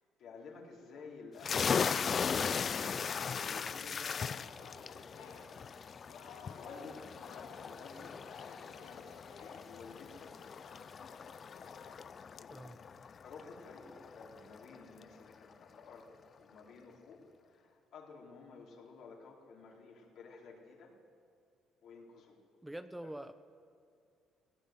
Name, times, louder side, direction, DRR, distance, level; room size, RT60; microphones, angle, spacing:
voice 1, 0.0-2.6 3.0-10.8 12.3-12.7 13.0-21.0 21.8-22.4 23.0-23.1, left 4 dB, 70° left, -1 dB, 4.6 m, -54 dB
sound 1, 1.4-14.8, left 6 dB, 45° left, 0.6 m, -38 dB
Singing, 2.5-12.1, left 6 dB, 85° left, 2.6 m, -56 dB
voice 2, 22.6-23.3, right 1 dB, 10° right, 10 dB, 1.0 m, -44 dB
18.5 x 18.0 x 9.6 m, 2.4 s
supercardioid pair, 65°, 0 cm